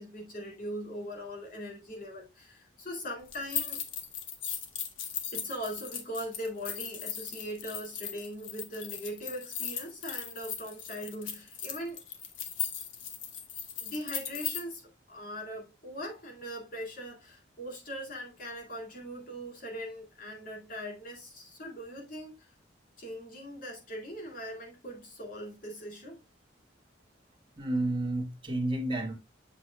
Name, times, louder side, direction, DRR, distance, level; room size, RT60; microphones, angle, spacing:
voice 1, 0.0-3.8 5.3-12.0 13.8-22.5 23.0-26.2, equal, 45° left, 2.2 m, -40 dB
sound 1, 3.3-14.6, left 8 dB, 90° left, 1.2 m, -38 dB
voice 2, 27.6-29.1, right 1 dB, 25° right, 1.3 m, -30 dB
7.7 x 6.3 x 2.2 m
head